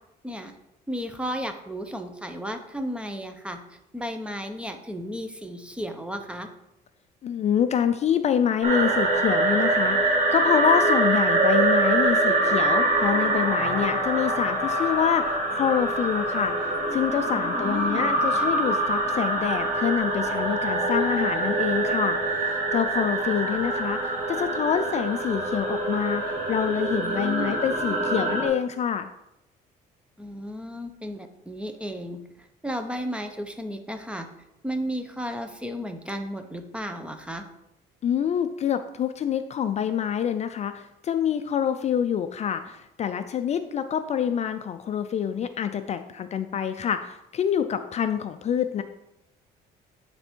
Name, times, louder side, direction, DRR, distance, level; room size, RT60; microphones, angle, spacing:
voice 1, 0.9-6.5 17.6-18.5 27.0-27.6 30.2-34.3 34.6-37.4, equal, 5° right, 6 dB, 0.8 m, -34 dB
voice 2, 7.2-29.1 38.0-48.8, left 8 dB, 40° left, 9 dB, 0.4 m, -26 dB
sound 1, 8.6-28.5, right 2 dB, 45° right, 2.4 m, -24 dB
9.8 x 3.4 x 4.4 m, 0.86 s
cardioid pair, 110°, 17 cm